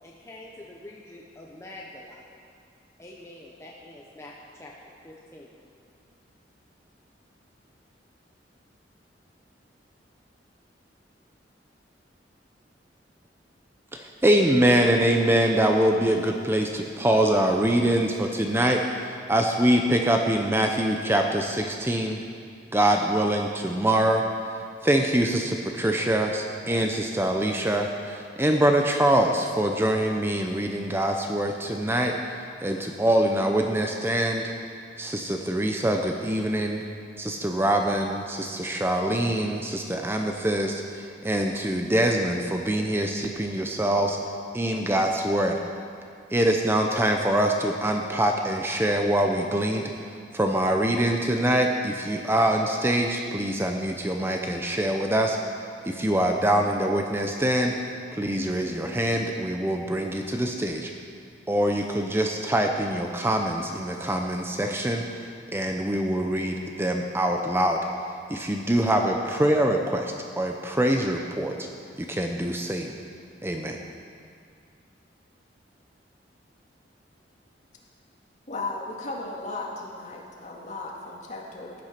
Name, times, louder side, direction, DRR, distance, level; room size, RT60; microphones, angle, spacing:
voice 1, 0.0-2.2 3.0-4.7 5.0-5.6, left 1 dB, 15° left, -3 dB, 1.0 m, -45 dB
voice 2, 13.9-22.2 22.7-34.5 35.0-36.9 37.2-44.2 44.5-45.6 46.3-57.8 58.1-60.9 61.5-67.8 68.3-71.7 72.0-73.0 73.4-73.8, right 1 dB, 15° right, 3 dB, 0.7 m, -24 dB
voice 3, 78.5-81.8, left 2 dB, 45° left, -2 dB, 2.1 m, -35 dB
15.5 x 9.5 x 5.9 m, 2.3 s
head